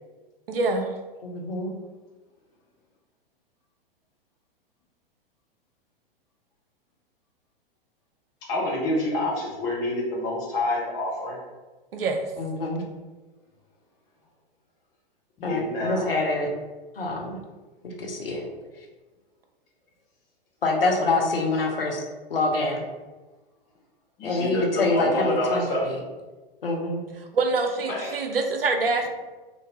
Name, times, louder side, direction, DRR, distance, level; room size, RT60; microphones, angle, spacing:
voice 1, 0.5-1.0 11.9-12.2 27.3-29.1, right 3 dB, 75° right, 5 dB, 0.5 m, -25 dB
voice 2, 1.2-1.7 12.4-12.8 15.4-16.5 17.0-17.4 17.8-18.5 20.6-22.0 22.3-22.8 24.2-26.0 26.6-27.0, left 2 dB, 75° left, 0 dB, 0.7 m, -26 dB
voice 3, 8.5-11.4 15.4-16.1 24.2-25.8 28.0-28.1, left 1 dB, 15° left, -4 dB, 0.3 m, -27 dB
2.5 x 2.5 x 2.9 m, 1.2 s
figure-of-eight pair, 105°, 29 cm